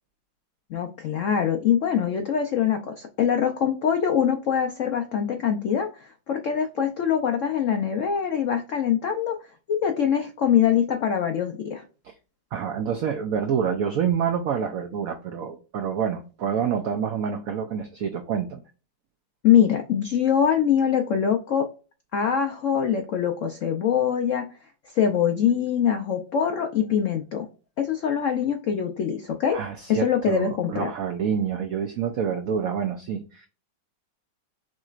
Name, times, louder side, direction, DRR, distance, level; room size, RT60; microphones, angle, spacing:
voice 1, 0.7-9.3 9.7-11.8 19.4-21.7 22.1-24.4 24.9-27.5 27.8-29.6 29.9-30.9, left 8 dB, 90° left, 0.6 m, -23 dB
voice 2, 12.5-18.6 29.5-33.5, right 7 dB, 85° right, 0.7 m, -27 dB
6.3 x 3.1 x 2.4 m
omnidirectional pair, 2.1 m